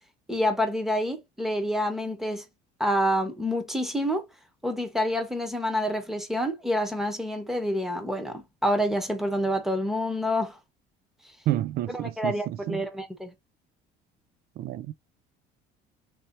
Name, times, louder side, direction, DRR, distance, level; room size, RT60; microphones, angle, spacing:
voice 1, 0.3-2.4 2.8-4.2 4.6-10.6 11.9-13.3, equal, ahead, 1.1 m, -27 dB
voice 2, 11.5-12.9 14.6-14.9, right 13 dB, 60° right, 0.4 m, -30 dB
3.2 x 3.0 x 4.1 m
cardioid pair, 110°, 18 cm